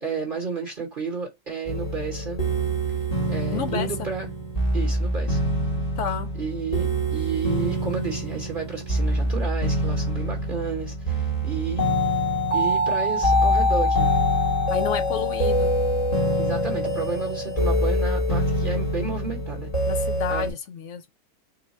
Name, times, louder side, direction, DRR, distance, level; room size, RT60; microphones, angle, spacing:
voice 1, 0.0-2.4 3.3-4.3 4.7-5.5 6.4-11.9 12.5-14.2 16.4-19.7 20.3-20.5, right 4 dB, 35° right, 1.2 m, -31 dB
sound 1, 1.7-20.5, equal, 25° left, 1.2 m, -24 dB
voice 2, 3.5-4.1 6.0-6.3 14.7-15.7 19.9-21.1, left 7 dB, 65° left, 0.8 m, -30 dB
4.0 x 2.2 x 4.1 m
omnidirectional pair, 1.7 m